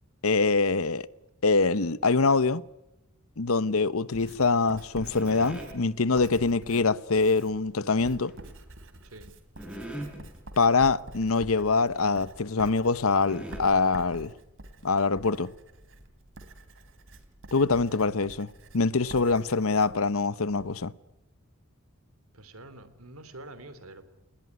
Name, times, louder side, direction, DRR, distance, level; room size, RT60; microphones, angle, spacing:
voice 1, 0.2-1.1 1.4-2.6 3.4-8.3 10.6-14.3 14.8-15.5 17.5-18.5 18.7-20.9, left 4 dB, 75° left, 0.9 m, -24 dB
Writing, 4.1-20.7, right 1 dB, 65° right, 3.1 m, -48 dB
sound 1, 5.0-5.8 8.2-8.6 9.1-9.2 9.6-10.4 10.9-11.0 11.2-11.4 11.9-12.0 12.9-13.0 13.3-13.6, right 1 dB, 5° right, 6.3 m, -40 dB
voice 2, 22.3-24.1, right 2 dB, 80° right, 3.2 m, -47 dB
29.5 x 19.5 x 9.6 m
head